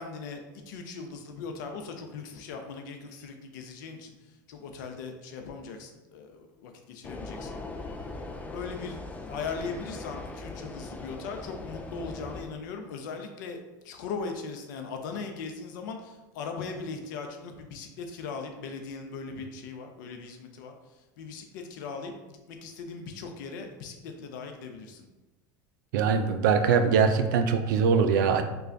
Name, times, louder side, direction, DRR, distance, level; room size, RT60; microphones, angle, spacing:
voice 1, 0.0-7.6 8.5-25.1, left 5 dB, 80° left, 5 dB, 0.6 m, -39 dB
sound 1, 7.0-12.4, left 2 dB, 15° left, 0.4 m, -40 dB
voice 2, 25.9-28.4, right 6 dB, 85° right, 8 dB, 0.4 m, -22 dB
3.2 x 2.3 x 3.8 m, 1.1 s
supercardioid pair, 100°, 10 cm